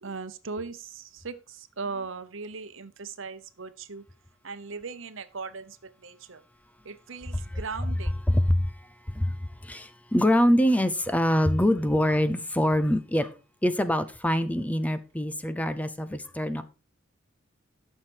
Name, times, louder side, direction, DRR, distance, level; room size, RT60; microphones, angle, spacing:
voice 1, 0.0-4.0 4.4-6.4 6.8-8.1, right 4 dB, 70° right, 12 dB, 0.9 m, -38 dB
voice 2, 8.3-8.7 9.1-9.4 9.6-13.3 13.6-16.6, equal, 5° left, 11 dB, 0.6 m, -24 dB
12.0 x 6.7 x 4.5 m, 0.33 s
head